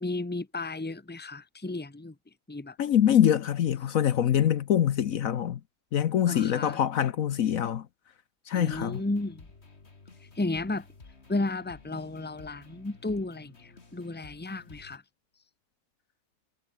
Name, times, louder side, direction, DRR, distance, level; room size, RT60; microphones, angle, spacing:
voice 1, 0.0-2.1 2.5-2.8 6.3-6.8 8.5-9.5 10.3-10.9 11.3-15.0, left 2 dB, 5° left, 1.1 m, -33 dB
voice 2, 2.8-5.6 5.9-7.9 8.5-9.0, left 10 dB, 65° left, 1.2 m, -24 dB
sound 1, 8.7-15.0, left 3 dB, 45° left, 2.8 m, -53 dB
omnidirectional pair, 1.6 m